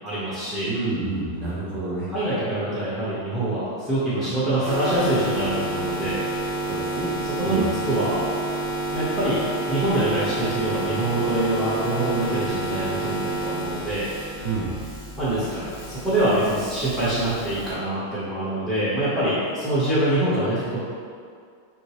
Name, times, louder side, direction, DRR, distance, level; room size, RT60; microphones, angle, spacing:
voice 1, 0.0-0.7 2.1-6.2 7.4-8.2 8.9-9.4 9.7-14.1 15.2-20.8, right 1 dB, ahead, -12 dB, 0.4 m, -25 dB
voice 2, 0.6-2.1 6.7-7.2 7.4-7.7 14.4-14.8, right 3 dB, 65° right, -6 dB, 1.1 m, -28 dB
sound 1, 4.6-17.7, right 2 dB, 35° left, 0.9 m, -30 dB
6.2 x 2.6 x 3.1 m, 2.2 s
omnidirectional pair, 2.3 m